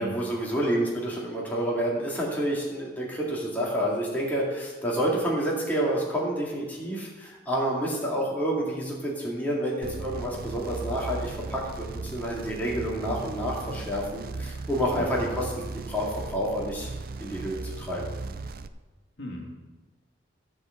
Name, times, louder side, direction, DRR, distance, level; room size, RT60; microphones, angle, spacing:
voice 1, 0.0-16.9 17.2-18.1, equal, 10° left, -5 dB, 2.2 m, -29 dB
sound 1, 9.8-18.7, right 3 dB, 50° right, 0.5 m, -37 dB
voice 2, 19.2-19.5, equal, 60° left, -2 dB, 2.1 m, -37 dB
13.0 x 4.9 x 7.7 m, 1.2 s
head